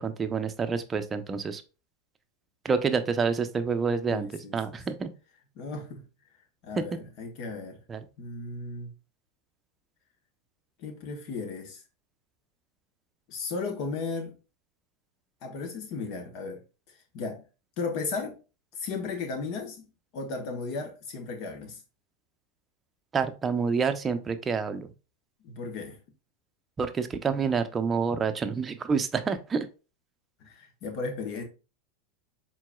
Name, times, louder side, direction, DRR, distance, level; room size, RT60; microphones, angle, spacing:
voice 1, 0.0-1.6 2.6-4.3 4.5-5.1 7.9-8.0 23.1-24.9 26.8-29.7, right 5 dB, 25° right, 0.6 m, -28 dB
voice 2, 4.1-4.8 5.5-6.1 6.6-7.8 8.2-8.9 10.8-11.8 13.3-14.3 15.4-16.6 16.9-17.4 17.8-18.4 18.7-21.8 25.4-26.0 30.4-31.4, left 4 dB, 55° left, 1.3 m, -35 dB
4.6 x 3.8 x 2.3 m
hypercardioid pair, 100°, 0 cm